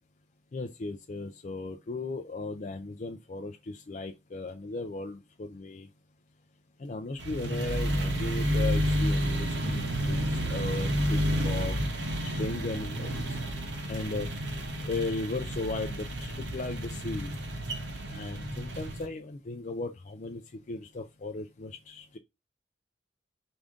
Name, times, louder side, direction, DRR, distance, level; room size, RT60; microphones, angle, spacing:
voice 1, 0.5-5.9 6.8-11.8 12.2-13.2 13.9-14.3 14.8-17.3 18.1-20.4 20.7-22.2, left 3 dB, 40° left, 0.4 m, -36 dB
sound 1, 7.2-19.1, equal, 70° right, 0.9 m, -30 dB
5.0 x 2.6 x 3.5 m
head